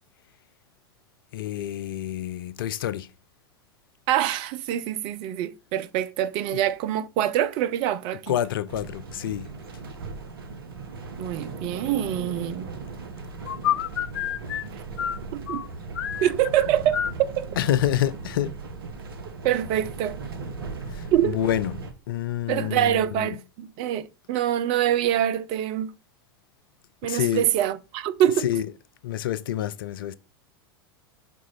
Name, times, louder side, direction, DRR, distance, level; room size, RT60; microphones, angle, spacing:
voice 1, 1.3-3.1 6.5-6.7 8.3-9.5 13.5-14.7 15.0-15.2 15.5-15.7 15.9-16.3 16.9-17.2 17.6-18.5 20.9-21.8 22.1-23.4 27.1-27.5 28.2-28.8 29.0-30.1, left 11 dB, 65° left, 0.5 m, -28 dB
voice 2, 4.1-8.4 11.2-12.7 15.3-15.6 16.2-17.0 17.4-17.5 19.4-20.2 21.1-21.4 22.5-25.9 27.0-28.5, right 11 dB, 45° right, 0.6 m, -25 dB
sound 1, 8.7-21.9, right 4 dB, 70° right, 1.1 m, -38 dB
6.0 x 4.5 x 4.0 m
figure-of-eight pair, 90°, 13 cm